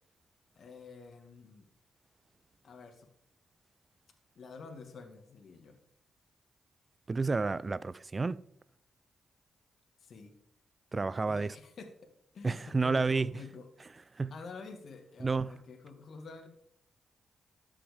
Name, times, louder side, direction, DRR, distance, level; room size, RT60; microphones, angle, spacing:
voice 1, 0.6-1.7 2.6-3.1 4.4-5.8 10.0-10.3 11.3-11.9 12.3-13.7 14.3-16.5, left 4 dB, 65° left, 1.9 m, -48 dB
voice 2, 7.1-8.4 10.9-11.5 12.4-13.3 14.2-14.4 15.2-15.6, right 4 dB, 35° right, 0.5 m, -30 dB
13.0 x 6.2 x 5.1 m
supercardioid pair, 50°, 0 cm